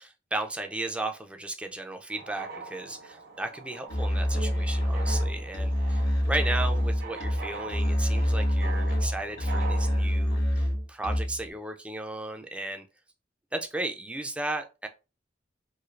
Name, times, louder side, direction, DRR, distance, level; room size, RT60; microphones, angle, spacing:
voice 1, 0.0-12.8 13.5-14.9, right 2 dB, 5° right, 0.3 m, -35 dB
sound 1, 2.1-10.0, right 4 dB, 55° right, 0.6 m, -42 dB
Musical instrument, 3.9-11.5, equal, 75° left, 1.2 m, -26 dB
3.1 x 2.7 x 2.4 m
head